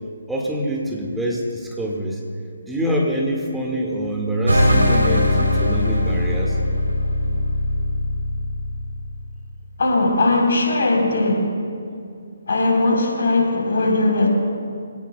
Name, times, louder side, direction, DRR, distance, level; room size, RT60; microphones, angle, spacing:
voice 1, 0.3-2.2 2.7-6.6, equal, 5° right, -3 dB, 1.8 m, -25 dB
sound 1, 4.5-9.3, left 1 dB, 80° right, 3.4 m, -20 dB
voice 2, 9.8-11.5 12.5-14.3, left 2 dB, 60° left, -1 dB, 3.8 m, -19 dB
22.5 x 17.5 x 2.3 m, 2.4 s
figure-of-eight pair, 140°, 0 cm